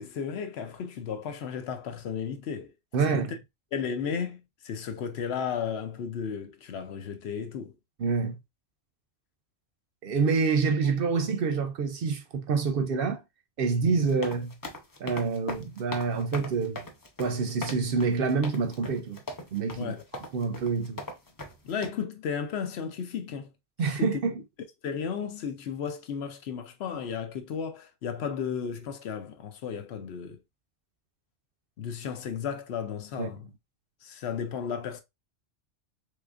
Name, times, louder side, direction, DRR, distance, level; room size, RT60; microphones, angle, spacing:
voice 1, 0.0-2.7 3.1-3.4 3.7-7.7 19.8-20.0 21.6-23.5 23.8-24.1 24.8-30.4 31.8-33.5 34.0-35.0, left 7 dB, 70° left, 0.8 m, -34 dB
voice 2, 2.9-3.3 8.0-8.4 10.0-13.2 13.6-14.6 15.0-16.8 17.2-19.2 19.5-21.0 23.8-24.4 33.2-33.3, right 5 dB, 60° right, 0.7 m, -27 dB
sound 1, 13.9-21.9, left 2 dB, 30° left, 0.4 m, -39 dB
3.7 x 3.2 x 2.4 m
omnidirectional pair, 1.2 m